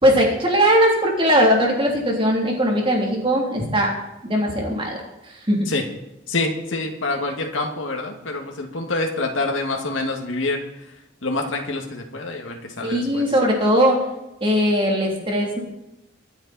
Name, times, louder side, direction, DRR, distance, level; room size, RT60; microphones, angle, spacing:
voice 1, 0.0-3.9 4.2-5.0 5.5-5.7 12.8-14.0 14.4-15.6, equal, 25° right, -1 dB, 3.4 m, -19 dB
voice 2, 6.3-13.2, left 2 dB, 80° left, 2 dB, 2.3 m, -27 dB
25.0 x 8.8 x 4.4 m, 0.90 s
head